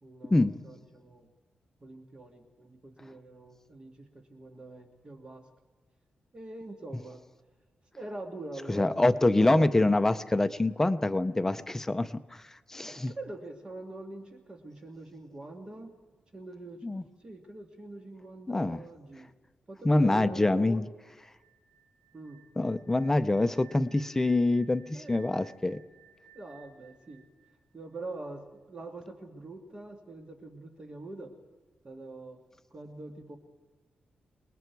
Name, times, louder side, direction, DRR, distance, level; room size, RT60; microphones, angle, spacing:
voice 1, 0.0-1.3 1.8-5.5 6.3-7.2 8.0-9.7 12.9-15.9 16.3-19.3 19.7-20.8 22.1-22.4 24.9-25.3 26.3-27.3 27.7-31.3 31.8-32.4 32.7-33.4, right 2 dB, 30° right, 4 dB, 1.8 m, -44 dB
voice 2, 8.7-12.4 12.7-13.1 16.8-17.0 18.5-18.8 19.8-20.9 22.6-25.8, left 2 dB, 10° left, 11 dB, 0.6 m, -25 dB
sound 1, 21.3-28.2, right 8 dB, 5° right, 3.7 m, -59 dB
28.5 x 20.0 x 4.7 m, 1.3 s
wide cardioid pair, 150°, 3 cm